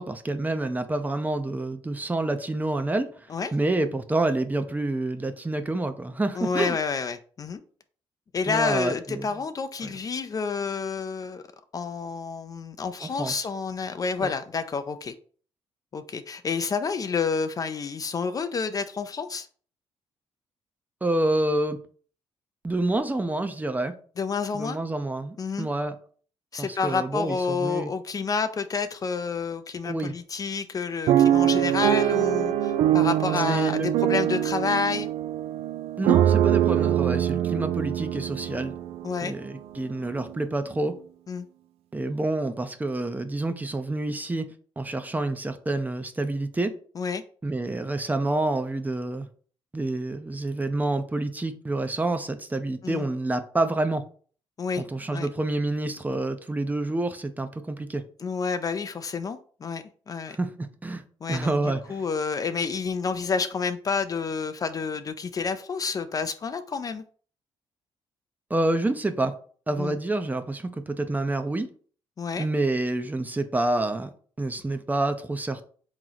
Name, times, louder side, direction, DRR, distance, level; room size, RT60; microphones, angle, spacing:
voice 1, 0.0-6.8 8.5-9.4 9.8-9.9 13.0-13.5 14.2-14.3 21.0-21.8 22.6-23.9 24.5-25.9 26.6-27.9 29.8-30.1 33.5-33.9 36.0-38.7 39.2-40.9 41.9-44.5 44.8-46.7 47.4-49.3 49.7-54.0 54.8-58.0 60.3-61.0 61.3-62.0 68.5-69.3 69.7-71.7 72.4-74.1 74.4-75.6, right 2 dB, 15° right, 9 dB, 0.5 m, -28 dB
voice 2, 6.4-7.6 8.3-11.4 11.7-15.1 15.9-19.5 24.2-24.8 25.4-25.7 26.5-35.1 39.0-39.3 41.3-41.5 47.0-47.2 52.8-53.1 54.6-54.8 55.1-55.3 58.2-60.4 61.2-67.0 69.8-70.0 72.2-72.5, left 5 dB, 35° left, 10 dB, 0.4 m, -29 dB
sound 1, 31.1-39.2 39.8-39.9 40.1-40.4, right 11 dB, 85° right, 0.4 m, -23 dB
3.7 x 3.0 x 3.9 m, 0.44 s
cardioid pair, 85°, 10 cm